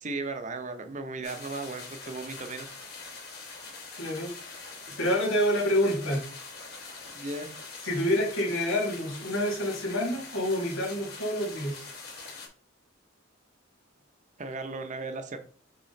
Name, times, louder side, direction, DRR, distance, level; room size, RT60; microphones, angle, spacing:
voice 1, 0.0-2.7 7.1-7.5 14.4-15.4, right 3 dB, 40° right, 7 dB, 0.8 m, -36 dB
sound 1, 1.2-12.5, left 4 dB, 50° left, 2.9 m, -44 dB
voice 2, 4.0-4.3 5.0-6.2 7.8-11.9, equal, 85° left, -1 dB, 2.5 m, -27 dB
6.5 x 3.7 x 4.0 m, 0.42 s
head